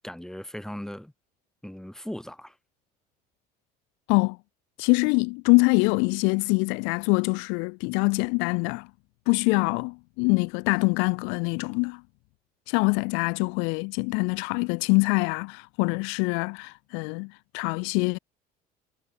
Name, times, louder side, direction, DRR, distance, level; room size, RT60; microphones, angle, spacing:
voice 1, 0.0-1.1 1.6-2.5, equal, ahead, 4.2 m, -38 dB
voice 2, 4.8-8.9 9.3-12.0 12.7-18.2, left 34 dB, 80° left, 0.6 m, -24 dB
supercardioid pair, 90°, 20 cm